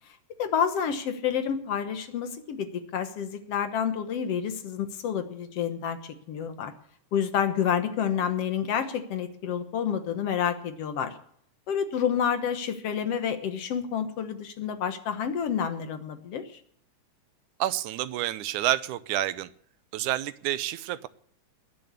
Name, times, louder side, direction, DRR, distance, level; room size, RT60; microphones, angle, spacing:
voice 1, 0.4-6.7 7.1-11.2 11.7-16.6, left 8 dB, 60° left, 9 dB, 2.0 m, -29 dB
voice 2, 17.6-19.5 19.9-21.1, right 13 dB, 90° right, 15 dB, 2.2 m, -29 dB
20.5 x 7.0 x 8.3 m, 0.65 s
omnidirectional pair, 3.4 m